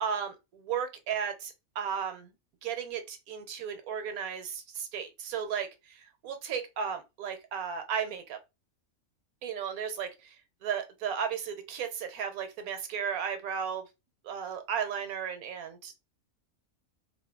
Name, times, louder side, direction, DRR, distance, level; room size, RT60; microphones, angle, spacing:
voice 1, 0.0-2.3 2.6-8.4 9.4-10.1 10.6-13.8 14.2-16.0, right 7 dB, 85° right, 1.2 m, -34 dB
2.7 x 2.5 x 3.6 m
omnidirectional pair, 1.5 m